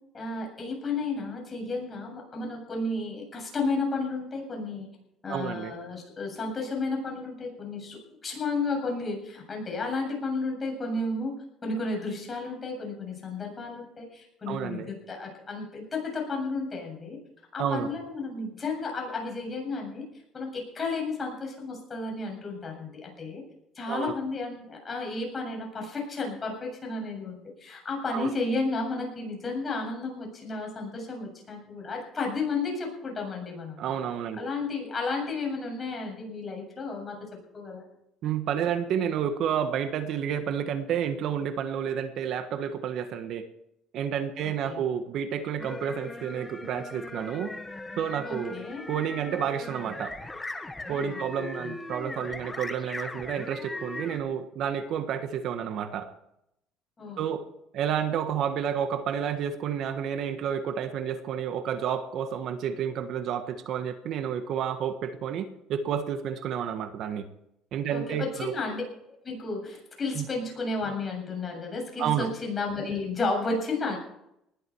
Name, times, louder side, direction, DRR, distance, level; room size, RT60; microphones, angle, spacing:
voice 1, 0.1-4.9 5.2-11.3 11.6-17.2 17.5-20.0 20.3-23.4 23.7-33.8 34.4-37.3 37.5-37.9 44.4-44.8 48.2-48.9 51.0-51.3 51.6-51.8 57.0-57.2 67.9-68.8 69.2-74.0, left 3 dB, 25° left, 0 dB, 7.6 m, -32 dB
voice 2, 5.3-5.7 14.5-14.9 17.6-17.9 23.9-24.1 28.1-28.3 33.8-34.5 38.2-43.5 43.9-47.5 48.0-48.6 48.9-50.1 50.9-56.1 57.2-57.4 57.7-67.2 67.7-68.5 70.1-70.2 72.0-72.3, right 8 dB, 60° right, 9 dB, 1.5 m, -30 dB
sound 1, 45.6-54.2, left 2 dB, 10° left, 1.5 m, -39 dB
20.0 x 11.5 x 4.8 m, 0.79 s
cardioid pair, 115°, 0 cm